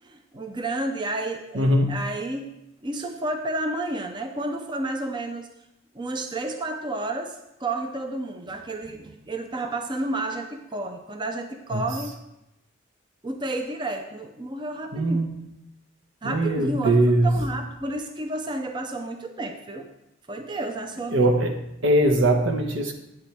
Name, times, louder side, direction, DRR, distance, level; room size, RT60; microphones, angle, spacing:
voice 1, 0.0-2.5 2.8-5.5 5.9-12.2 13.2-15.3 16.2-16.9 17.2-19.9 20.3-21.4, right 2 dB, 25° right, 6 dB, 0.5 m, -31 dB
voice 2, 1.5-2.0 11.7-11.8 14.9-15.4 16.2-17.3 21.1-21.5 21.8-22.9, right 1 dB, 80° right, 5 dB, 1.1 m, -21 dB
8.9 x 8.8 x 3.4 m, 0.87 s
head